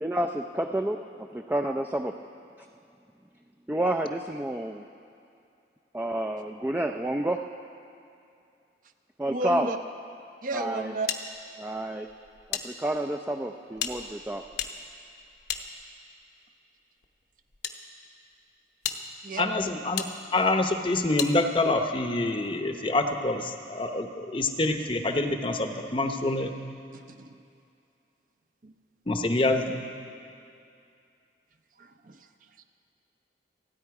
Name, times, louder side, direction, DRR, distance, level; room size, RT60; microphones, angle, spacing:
voice 1, 0.0-1.0 1.5-2.1 3.7-4.8 5.9-7.4 9.2-9.7 10.5-10.9 11.6-12.1 12.6-14.4, right 1 dB, 10° right, 4 dB, 0.4 m, -29 dB
voice 2, 9.2-9.8 10.4-11.1 19.2-19.5 26.9-27.3 28.6-28.7 31.8-32.2, right 2 dB, 45° right, 7 dB, 0.7 m, -33 dB
sound 1, 11.1-12.7 12.9-13.0 13.7-16.2 17.0-17.8 18.3-18.4 18.8-19.0 20.0-20.1 21.2-21.3, left 8 dB, 60° left, 0.9 m, -34 dB
voice 3, 19.4-20.0 20.3-26.5 29.1-29.8, left 2 dB, 30° left, 6 dB, 0.8 m, -26 dB
28.5 x 9.9 x 4.8 m, 2.5 s
head